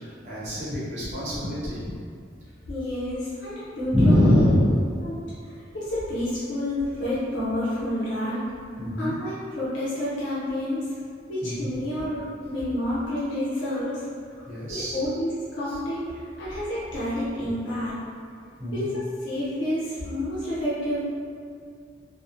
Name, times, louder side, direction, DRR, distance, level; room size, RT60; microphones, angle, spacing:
voice 1, 0.0-1.9 3.9-5.0 8.8-9.2 11.4-11.7 12.0-12.1 14.5-15.0 15.6-15.8 17.4-17.5 18.6-18.9, left 1 dB, 40° right, -10 dB, 0.8 m, -24 dB
voice 2, 2.7-4.4 5.0-8.4 9.0-10.9 11.3-14.0 14.4-18.0 18.7-21.0, left 1 dB, 85° left, -10 dB, 0.6 m, -29 dB
2.8 x 2.0 x 2.4 m, 2.3 s
head